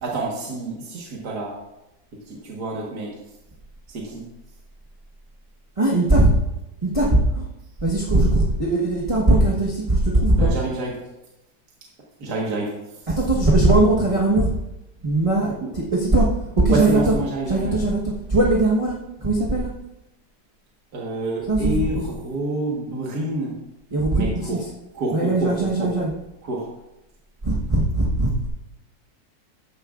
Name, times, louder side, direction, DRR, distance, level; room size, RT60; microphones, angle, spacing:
voice 1, 0.0-1.6 2.2-3.2 3.9-4.2 10.4-10.9 12.2-13.1 15.6-15.7 16.7-17.8 20.9-23.6 24.1-24.6 24.9-25.9 26.4-26.7, right 2 dB, 60° right, -3 dB, 2.0 m, -28 dB
voice 2, 5.8-6.3 6.8-7.5 7.8-10.5 13.1-14.5 15.0-17.1 17.5-19.7 21.5-22.0 23.9-24.7 25.1-26.1 27.4-28.5, right 2 dB, 20° right, -4 dB, 1.1 m, -20 dB
13.5 x 9.8 x 2.5 m, 0.92 s
omnidirectional pair, 1.9 m